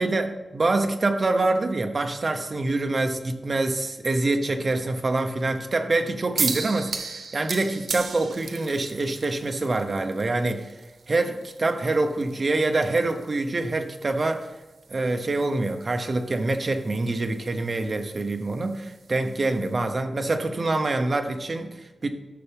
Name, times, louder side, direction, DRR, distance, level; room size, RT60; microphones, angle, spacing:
voice 1, 0.0-10.7 11.1-14.5 14.9-22.1, right 2 dB, 40° right, 5 dB, 0.9 m, -25 dB
sound 1, 6.4-19.7, right 4 dB, 80° right, 1.2 m, -37 dB
11.5 x 6.9 x 3.5 m, 1.1 s
wide cardioid pair, 150°, 0 cm